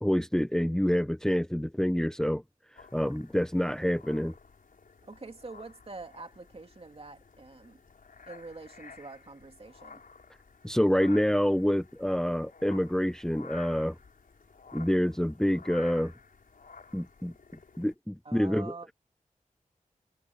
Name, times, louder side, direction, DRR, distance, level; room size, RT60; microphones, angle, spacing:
voice 1, 0.0-2.4 2.9-4.3 10.6-14.0 14.7-16.1 16.9-17.3 17.8-18.7, equal, 5° left, 0.8 m, -27 dB
sound 1, 2.8-17.9, left 5 dB, 85° left, 5.3 m, -52 dB
voice 2, 5.0-7.8 8.3-10.0 18.2-18.9, right 3 dB, 45° right, 3.0 m, -45 dB
wide cardioid pair, 80°, 14 cm